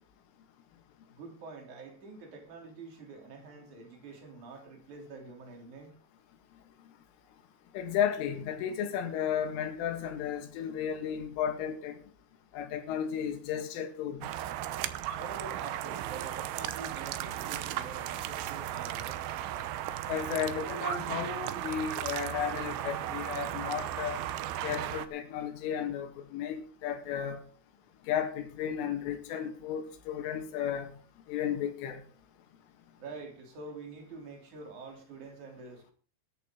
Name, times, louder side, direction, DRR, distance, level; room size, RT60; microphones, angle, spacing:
voice 1, 1.1-6.0 15.1-19.3 33.0-35.9, right 4 dB, 40° right, 4.3 m, -46 dB
voice 2, 7.7-12.0 12.5-14.3 20.1-24.2 24.6-27.4 28.1-30.9 31.3-32.0, left 8 dB, 85° left, 4.3 m, -33 dB
sound 1, 14.2-25.1, right 12 dB, 80° right, 3.1 m, -36 dB
20.0 x 11.0 x 3.8 m
omnidirectional pair, 5.6 m